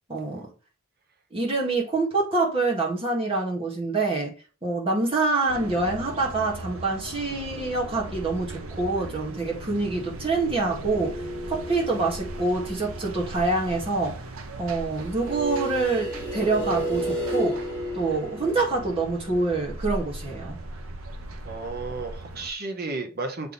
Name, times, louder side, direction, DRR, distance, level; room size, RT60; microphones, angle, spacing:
voice 1, 0.1-0.5 1.3-4.3 4.6-11.2 11.5-14.2 14.6-17.6 17.9-20.6, right 3 dB, 25° right, 1.8 m, -26 dB
sound 1, 5.5-22.5, right 2 dB, 80° right, 0.8 m, -39 dB
sound 2, 10.9-13.2 15.1-19.8, equal, 10° left, 2.5 m, -33 dB
voice 2, 21.4-23.5, right 3 dB, 45° right, 1.0 m, -33 dB
7.2 x 3.6 x 4.0 m
head